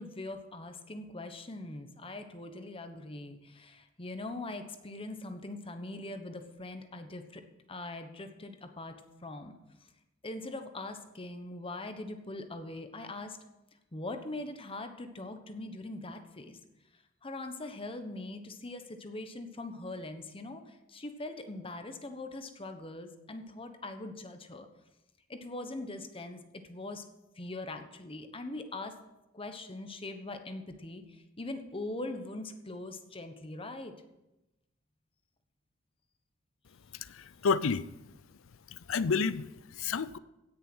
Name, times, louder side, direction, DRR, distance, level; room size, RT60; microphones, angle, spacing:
voice 1, 0.0-7.4 7.7-9.0 9.2-9.6 10.2-13.4 13.9-16.6 17.2-24.7 25.3-27.0 27.4-29.0 29.3-33.9, left 2 dB, 25° left, 7 dB, 1.2 m, -42 dB
voice 2, 36.9-37.9 38.7-40.2, left 5 dB, 75° left, 17 dB, 0.5 m, -31 dB
17.0 x 6.7 x 6.2 m, 0.94 s
head